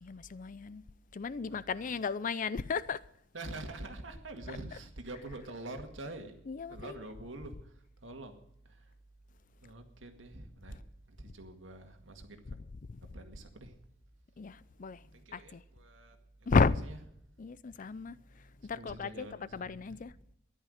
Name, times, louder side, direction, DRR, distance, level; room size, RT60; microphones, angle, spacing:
voice 1, 0.0-0.8 1.1-3.0 4.5-4.6 6.5-7.1 10.7-10.8 12.5-13.1 14.4-15.6 16.5-16.9 17.4-20.1, left 4 dB, 45° left, 0.5 m, -34 dB
voice 2, 3.3-8.9 9.6-10.8 11.1-12.6 13.1-13.8 15.1-16.6 16.9-17.0 18.7-20.0, right 2 dB, 80° right, 2.0 m, -46 dB
13.5 x 11.0 x 6.5 m
head